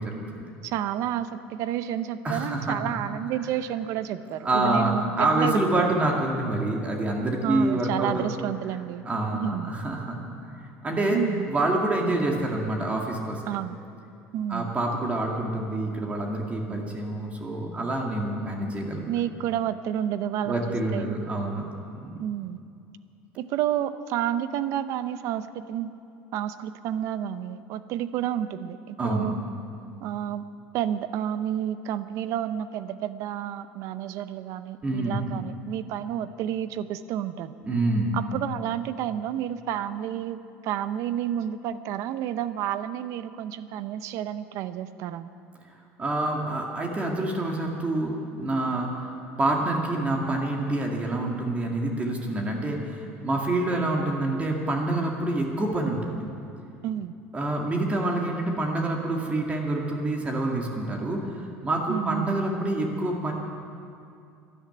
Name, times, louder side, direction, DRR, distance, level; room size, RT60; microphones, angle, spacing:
voice 1, 0.0-0.5 2.2-2.8 4.4-8.3 9.0-10.2 10.4-11.2 11.5-13.4 14.5-19.1 20.4-21.7 21.9-22.1 29.0-29.3 34.8-35.3 37.6-38.2 46.0-49.1 49.4-56.2 57.3-63.3, right 2 dB, 25° right, 0 dB, 2.1 m, -27 dB
voice 2, 0.6-5.9 7.4-9.1 9.3-9.7 11.1-11.5 13.5-13.8 14.3-14.7 16.7-16.9 19.1-21.1 22.2-22.6 23.4-25.9 26.3-29.4 30.0-30.4 30.7-37.5 38.1-45.3 56.8-57.1 61.9-62.3, right 10 dB, 65° right, 13 dB, 0.7 m, -30 dB
12.5 x 11.0 x 9.3 m, 2.5 s
supercardioid pair, 110°, 6 cm